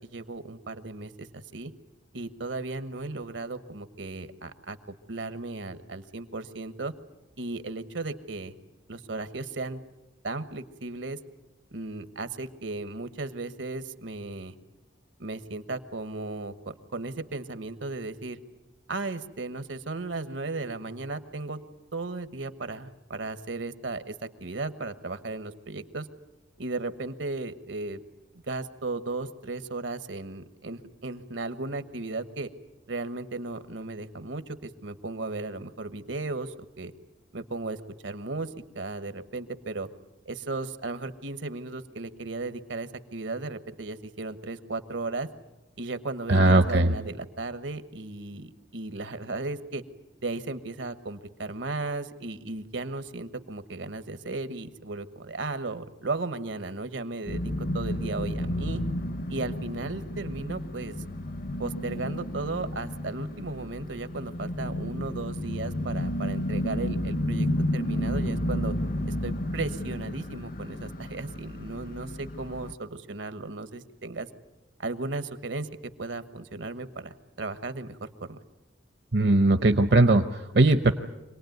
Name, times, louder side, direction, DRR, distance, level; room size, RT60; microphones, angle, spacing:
voice 1, 0.0-1.7 2.1-4.8 5.1-6.9 7.4-8.5 8.9-9.8 10.2-11.2 11.7-14.5 15.2-18.4 18.9-21.6 21.9-24.1 24.4-26.1 26.6-28.0 28.4-32.5 32.9-36.9 37.3-37.8 38.0-39.9 40.2-45.3 45.8-49.8 50.2-58.8 59.3-60.9 61.6-68.7 69.0-74.3 74.8-75.7 76.0-78.0 78.3-78.4, right 3 dB, 80° right, 11 dB, 1.3 m, -35 dB
voice 2, 46.3-46.9 79.1-80.9, right 2 dB, 60° right, 7 dB, 0.8 m, -19 dB
sound 1, 57.3-72.7, left 1 dB, 50° left, 0.8 m, -32 dB
26.0 x 19.0 x 9.3 m, 1.0 s
head